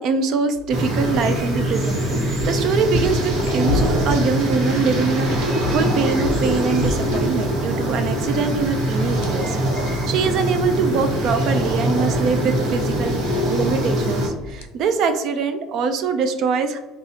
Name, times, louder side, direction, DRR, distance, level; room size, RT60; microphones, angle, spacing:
voice 1, 0.0-9.6 9.9-16.8, right 5 dB, 55° right, 8 dB, 0.4 m, -23 dB
sound 1, 0.5-14.7, left 3 dB, 85° left, 0.4 m, -33 dB
sound 2, 0.7-14.3, right 1 dB, 75° right, 1.2 m, -22 dB
sound 3, 1.2-10.2, right 1 dB, 10° right, 1.0 m, -43 dB
3.9 x 2.4 x 2.8 m, 1.1 s
cardioid pair, 125°, 0 cm